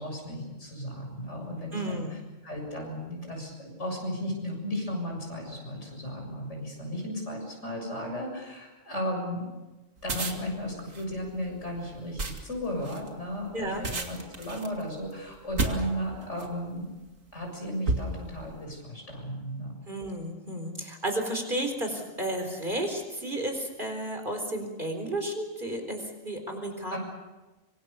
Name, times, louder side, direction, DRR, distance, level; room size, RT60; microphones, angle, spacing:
voice 1, 0.0-2.2 2.4-9.5 10.0-17.0 17.3-19.8 26.9-27.0, equal, 60° left, 1 dB, 7.6 m, -35 dB
voice 2, 1.7-2.1 13.5-13.8 19.9-27.0, right 1 dB, 40° right, 4 dB, 4.2 m, -32 dB
sound 1, 10.0-16.6 17.2-17.4 17.8-18.6, right 3 dB, 75° right, 2.7 m, -33 dB
25.5 x 24.5 x 7.0 m, 1.1 s
omnidirectional pair, 1.3 m